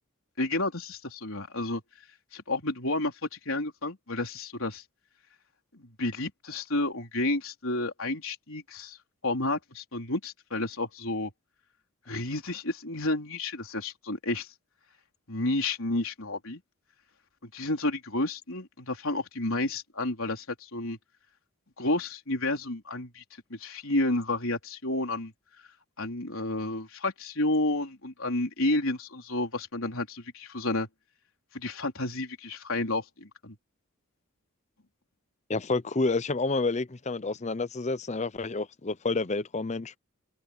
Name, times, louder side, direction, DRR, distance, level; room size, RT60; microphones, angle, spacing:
voice 1, 0.4-1.8 2.3-4.8 5.7-9.0 9.2-11.3 12.1-14.5 15.3-16.6 17.4-21.0 21.8-23.2 23.5-25.3 26.0-30.9 31.5-33.6, left 2 dB, 65° left, 4.4 m, -31 dB
voice 2, 35.5-40.0, left 3 dB, 30° left, 0.7 m, -29 dB
head